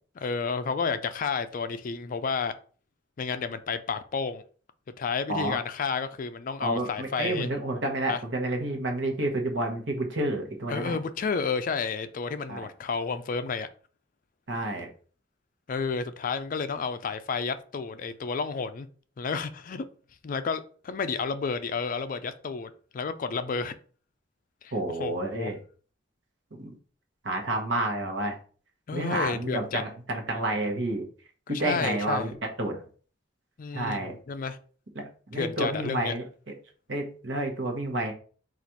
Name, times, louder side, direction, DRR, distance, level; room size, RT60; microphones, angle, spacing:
voice 1, 0.2-2.5 3.2-4.4 5.0-7.5 8.1-8.2 10.7-13.7 15.7-18.9 19.2-19.9 20.2-23.7 24.6-24.7 25.0-25.5 28.9-29.8 31.5-32.3 33.6-34.6 35.3-36.1, left 5 dB, 45° left, 0.3 m, -31 dB
voice 2, 6.6-10.9 12.5-12.7 14.5-14.9 24.7-25.6 26.6-26.7 27.2-28.4 28.9-31.0 31.5-32.3 32.6-32.8 33.7-34.1 34.9-36.2 36.9-38.1, right 1 dB, 65° right, 1.0 m, -30 dB
4.1 x 2.5 x 4.5 m
head